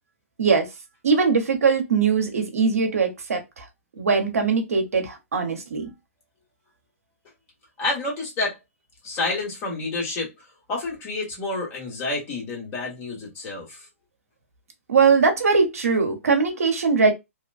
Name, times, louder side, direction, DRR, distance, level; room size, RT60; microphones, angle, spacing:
voice 1, 1.0-3.6 4.0-5.9 14.9-17.1, right 5 dB, 85° right, 0.9 m, -21 dB
voice 2, 7.8-8.6 9.0-10.3 10.7-13.9, left 3 dB, 25° left, 1.5 m, -29 dB
2.9 x 2.1 x 2.4 m
hypercardioid pair, 140°, 8 cm